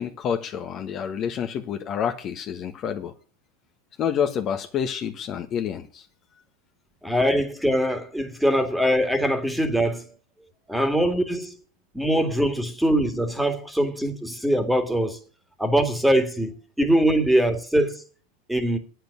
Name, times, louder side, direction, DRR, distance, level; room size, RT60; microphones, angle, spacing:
voice 1, 0.0-3.1 4.0-6.0, left 8 dB, 35° left, 1.3 m, -28 dB
voice 2, 7.0-10.1 10.7-11.6 11.9-15.2 15.6-18.0 18.5-18.8, right 1 dB, 5° right, 2.1 m, -22 dB
8.9 x 7.8 x 8.4 m
hypercardioid pair, 120°, 0 cm